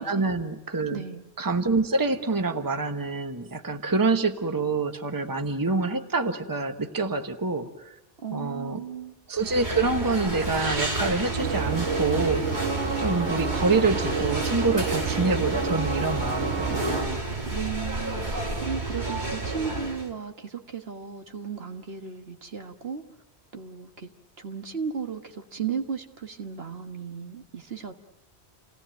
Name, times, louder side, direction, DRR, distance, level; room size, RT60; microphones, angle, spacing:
voice 1, 0.0-1.0 1.4-8.0 8.3-8.8 9.3-12.7 13.0-17.2, right 3 dB, 20° right, 1.2 m, -26 dB
voice 2, 0.9-1.3 8.2-9.2 17.5-23.0 23.5-24.1 24.4-27.9, right 6 dB, 65° right, 1.8 m, -35 dB
sound 1, 9.4-20.1, right 2 dB, 45° right, 2.7 m, -31 dB
sound 2, 11.4-17.0, right 4 dB, 80° right, 1.9 m, -29 dB
28.5 x 17.5 x 9.1 m
omnidirectional pair, 1.1 m